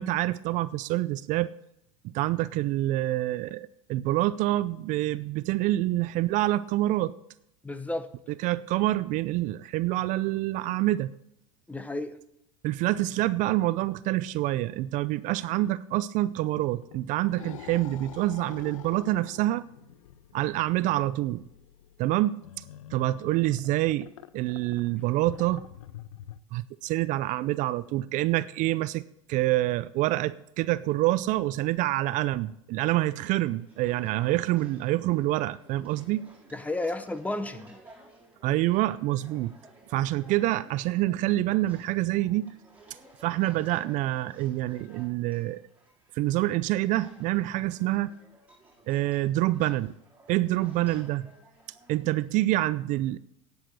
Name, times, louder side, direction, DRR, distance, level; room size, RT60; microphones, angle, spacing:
voice 1, 0.0-1.5 2.0-7.1 8.4-11.1 12.6-19.6 20.3-21.5 22.0-22.3 22.9-25.6 26.5-29.0 29.3-36.3 38.4-39.5 39.9-42.5 43.2-45.6 46.1-48.1 48.9-49.9 50.3-51.3 51.9-53.2, right 16 dB, 50° right, 17 dB, 0.4 m, -27 dB
voice 2, 7.6-8.1 11.7-12.2 36.5-37.8, left 2 dB, 10° left, 12 dB, 0.9 m, -32 dB
sound 1, 16.5-26.4, left 11 dB, 85° left, 0.6 m, -47 dB
sound 2, 33.0-52.7, right 2 dB, 10° right, 3.6 m, -56 dB
10.0 x 8.0 x 6.7 m, 0.78 s
hypercardioid pair, 95°, 17 cm